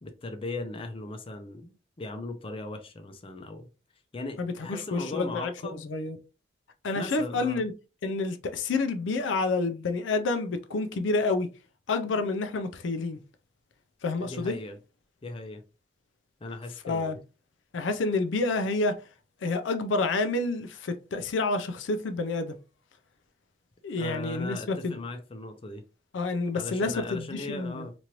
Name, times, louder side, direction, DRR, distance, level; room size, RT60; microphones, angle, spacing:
voice 1, 0.0-3.7 4.1-5.9 6.9-7.6 14.2-14.8 15.2-15.6 16.4-17.2 24.0-25.8 26.5-27.9, left 2 dB, 30° left, 0.5 m, -38 dB
voice 2, 4.4-5.5 5.8-6.2 6.8-7.7 8.0-11.5 11.9-13.2 14.0-14.5 16.8-17.2 17.7-18.9 19.4-22.6 23.8-25.0 26.1-27.9, left 3 dB, 90° left, 0.5 m, -29 dB
3.0 x 2.5 x 2.9 m
head